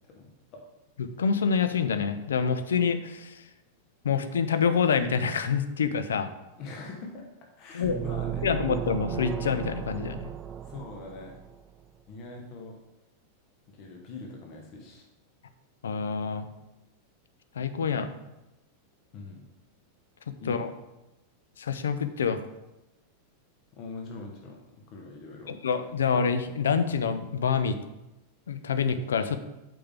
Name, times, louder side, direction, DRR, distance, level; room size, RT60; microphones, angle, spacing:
voice 1, 0.1-0.6 6.6-7.3 7.6-8.5 10.6-11.4 12.1-12.8 13.7-15.1 19.1-19.5 20.4-20.7 23.7-25.6, left 3 dB, 40° left, 1 dB, 1.2 m, -42 dB
voice 2, 1.0-3.4 4.0-6.3 7.7-8.0 8.4-10.3 15.8-16.5 17.6-18.1 20.5-20.7 21.6-22.4 25.5-27.8 28.5-29.4, left 6 dB, 65° left, 10 dB, 0.6 m, -27 dB
sound 1, 7.8-11.5, right 9 dB, 25° right, 0.5 m, -35 dB
8.5 x 5.3 x 3.5 m, 0.97 s
figure-of-eight pair, 90°, 0 cm